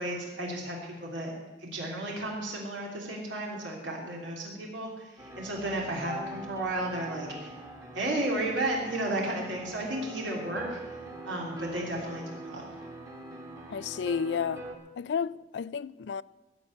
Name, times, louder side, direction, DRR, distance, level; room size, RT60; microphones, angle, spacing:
voice 1, 0.0-1.3 1.6-7.5 7.9-10.8 11.2-12.7, right 1 dB, 80° right, 3.3 m, -33 dB
sound 1, 5.2-14.8, right 1 dB, 15° right, 1.5 m, -43 dB
voice 2, 13.7-14.6 15.0-16.2, left 6 dB, 65° left, 0.3 m, -31 dB
16.0 x 5.9 x 9.8 m
head